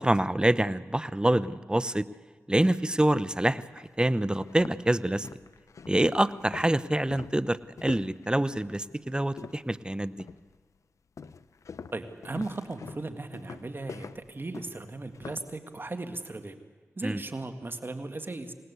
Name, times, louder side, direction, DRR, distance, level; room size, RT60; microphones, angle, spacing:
voice 1, 0.0-2.0 2.5-5.3 5.9-10.3 17.0-17.2, right 1 dB, 15° right, 16 dB, 0.9 m, -26 dB
Walking On A Wooden Floor, 3.8-3.9 4.3-9.8 10.2-10.6 11.2-15.5, left 5 dB, 85° left, 0.7 m, -45 dB
voice 2, 11.9-16.6 17.0-18.5, right 2 dB, 45° right, 7 dB, 2.1 m, -37 dB
27.0 x 19.0 x 8.3 m, 1.5 s
cardioid pair, 40°, 5 cm